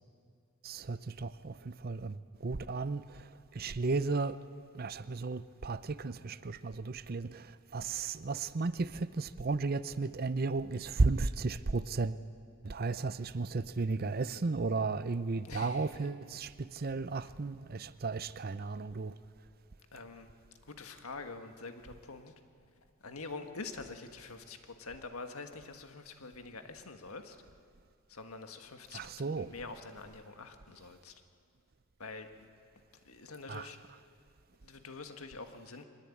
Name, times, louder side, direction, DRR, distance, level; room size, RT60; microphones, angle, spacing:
voice 1, 0.6-2.2 2.4-3.2 3.5-4.4 4.7-12.2 12.6-19.1 28.9-29.5 33.5-33.7, right 3 dB, 45° right, 0.6 m, -34 dB
voice 2, 15.4-16.2 17.2-17.3 19.9-20.3 20.6-22.3 23.0-27.4 28.1-31.2 32.0-32.5 33.0-33.8 34.6-35.8, left 3 dB, 85° left, 1.6 m, -46 dB
23.5 x 20.0 x 8.5 m
head